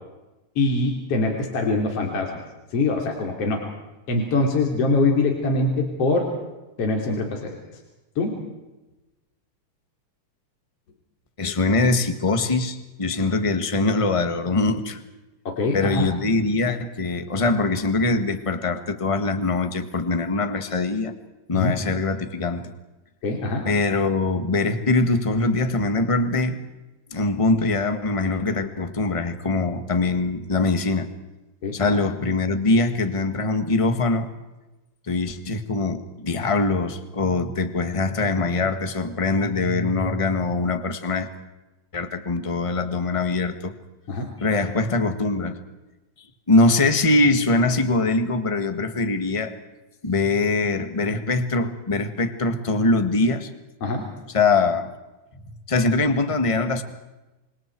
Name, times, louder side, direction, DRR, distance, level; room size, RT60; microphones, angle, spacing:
voice 1, 0.6-2.4 2.7-3.7 4.1-6.3 6.8-7.6 8.2-8.4 15.5-16.1 21.5-21.7 23.2-23.7 31.6-32.0 44.1-44.3 53.8-54.1, left 3 dB, 55° left, 1 dB, 4.0 m, -23 dB
voice 2, 11.4-15.0 15.7-21.1 21.5-22.7 23.6-26.6 27.1-31.1 31.7-34.3 35.1-41.3 41.9-43.7 44.4-45.6 46.5-49.6 50.0-53.5 54.3-54.9 55.7-56.8, left 3 dB, 15° left, 8 dB, 1.2 m, -22 dB
29.0 x 25.5 x 4.7 m, 1.1 s
omnidirectional pair, 3.3 m